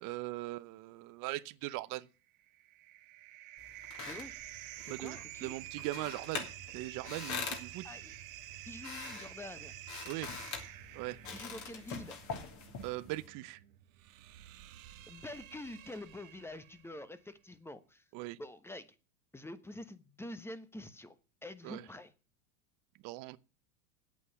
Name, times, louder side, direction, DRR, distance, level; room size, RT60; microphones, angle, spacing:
voice 1, 0.0-2.1 4.9-6.5 6.7-7.9 10.0-10.3 10.9-11.2 12.8-13.6 18.1-18.4 21.6-21.9 23.0-23.4, right 19 dB, 50° right, 0.8 m, -40 dB
sound 1, 2.3-16.9, right 14 dB, 70° right, 1.3 m, -50 dB
sound 2, 3.6-13.3, left 6 dB, 45° left, 3.2 m, -45 dB
voice 2, 4.0-4.3 4.9-5.5 7.8-8.1 8.7-9.7 11.3-12.2 15.1-18.0 18.4-18.9 19.3-21.1 21.4-22.1, left 1 dB, 5° left, 1.1 m, -46 dB
9.2 x 8.5 x 8.8 m
supercardioid pair, 115°, 42 cm